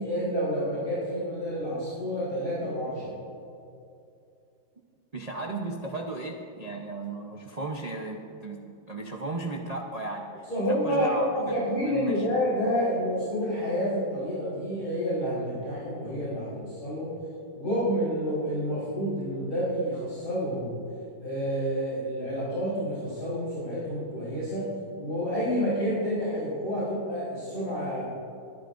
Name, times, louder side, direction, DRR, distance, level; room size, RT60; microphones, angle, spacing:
voice 1, 0.0-3.1 10.5-17.1 17.5-20.7 21.2-24.7 25.0-28.1, equal, 50° left, -10 dB, 4.4 m, -29 dB
voice 2, 5.1-11.4 11.9-12.3, right 2 dB, 65° right, 0 dB, 0.4 m, -35 dB
23.0 x 11.5 x 2.6 m, 2.5 s
omnidirectional pair, 2.0 m